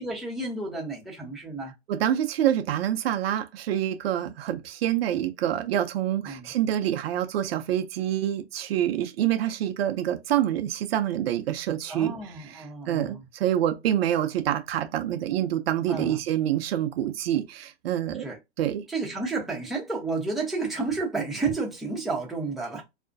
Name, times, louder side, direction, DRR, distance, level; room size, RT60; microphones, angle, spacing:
voice 1, 0.0-1.7 6.2-6.5 11.9-13.2 15.9-16.2 18.2-18.4 18.9-22.8, right 3 dB, ahead, 0.6 m, -31 dB
voice 2, 1.9-12.1 12.5-18.2 18.6-18.8, right 11 dB, 60° right, 0.5 m, -26 dB
2.3 x 2.1 x 2.5 m
hypercardioid pair, 115°, 35 cm